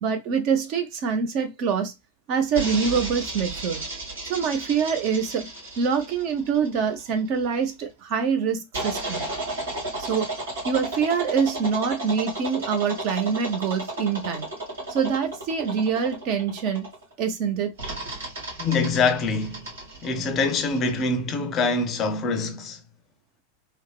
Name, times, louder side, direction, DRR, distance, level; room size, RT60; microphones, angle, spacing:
voice 1, 0.0-1.9 2.3-3.8 4.2-5.5 5.8-9.3 10.0-10.3 10.6-14.5 14.9-16.9 17.2-17.7, right 6 dB, 40° right, 0.6 m, -25 dB
sound 1, 2.5-7.4 8.7-17.1 17.8-21.0, right 2 dB, 65° right, 1.7 m, -33 dB
voice 2, 18.6-19.7 20.0-22.8, left 4 dB, 30° left, 0.5 m, -24 dB
3.3 x 2.1 x 2.3 m
figure-of-eight pair, 90°, 0 cm